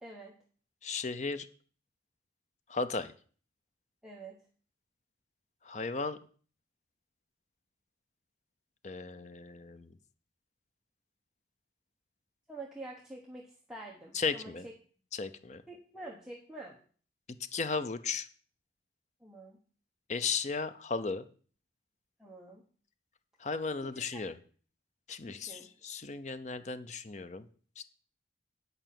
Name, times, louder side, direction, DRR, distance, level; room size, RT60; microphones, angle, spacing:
voice 1, 0.0-0.3 4.0-4.4 12.5-14.7 15.7-16.8 19.2-19.6 22.2-22.6 23.8-24.2 25.2-25.7, right 2 dB, 5° right, -3 dB, 1.2 m, -47 dB
voice 2, 0.8-1.5 2.7-3.1 5.7-6.2 8.8-9.9 14.1-14.7 15.1-15.6 17.5-18.3 20.1-21.2 23.4-24.4 25.1-27.4 27.8-27.9, left 4 dB, 40° left, 11 dB, 0.6 m, -35 dB
9.0 x 5.4 x 7.6 m, 0.43 s
head